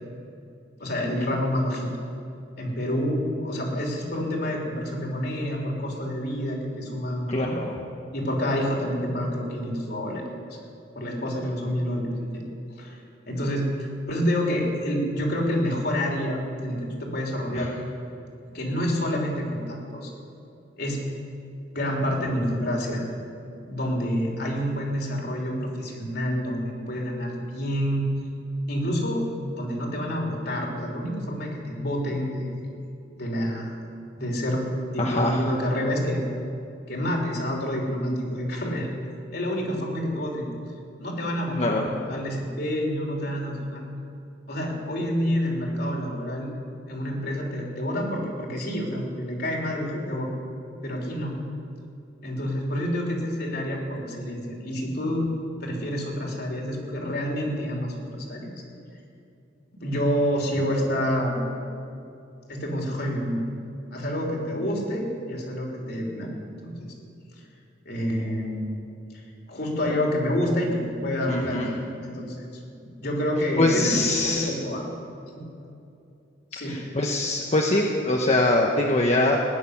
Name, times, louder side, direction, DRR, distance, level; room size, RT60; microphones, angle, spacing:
voice 1, 0.8-1.9 2.6-7.5 8.1-10.2 10.5-10.6 10.9-12.4 12.8-13.0 13.3-13.7 14.1-17.7 18.5-20.1 20.8-21.0 21.7-23.1 23.7-28.0 28.7-29.2 29.5-32.7 33.1-33.7 34.1-34.7 34.9-36.2 36.9-38.9 39.3-40.5 41.0-43.8 44.5-46.5 46.9-50.3 50.8-51.4 52.2-55.3 55.6-57.9 58.3-58.5 59.7-61.5 62.5-63.4 63.9-66.3 66.6-66.9 67.8-68.8 69.5-71.8 72.0-72.5 73.0-74.8 75.3-75.4 76.5-76.8, equal, 60° left, -1 dB, 3.3 m, -28 dB
voice 2, 7.3-7.7 17.5-17.7 35.0-35.4 41.6-41.9 71.3-71.7 73.6-74.5 76.7-79.4, left 2 dB, 35° left, 0 dB, 1.0 m, -23 dB
19.0 x 6.8 x 9.7 m, 2.6 s
head